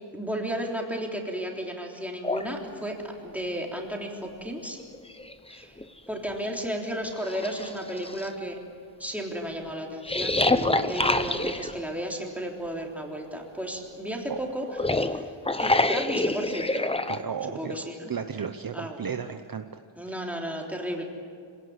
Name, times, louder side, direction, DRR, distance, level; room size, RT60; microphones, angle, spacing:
voice 1, 0.1-4.8 5.5-5.8 6.1-8.6 9.0-14.7 14.9-15.3 15.6-16.9 17.6-18.1 18.7-19.0 20.0-21.0, equal, 5° right, -1 dB, 3.5 m, -33 dB
sound 1, 2.2-2.5 4.3-4.4 4.8-5.8 6.4-6.5 7.1-8.3 10.0-11.8 14.6-17.2, left 2 dB, 10° left, 0.8 m, -26 dB
voice 2, 17.1-17.8 18.1-20.2, right 7 dB, 45° right, 8 dB, 0.9 m, -34 dB
26.0 x 17.5 x 9.6 m, 2.3 s
wide cardioid pair, 150°, 48 cm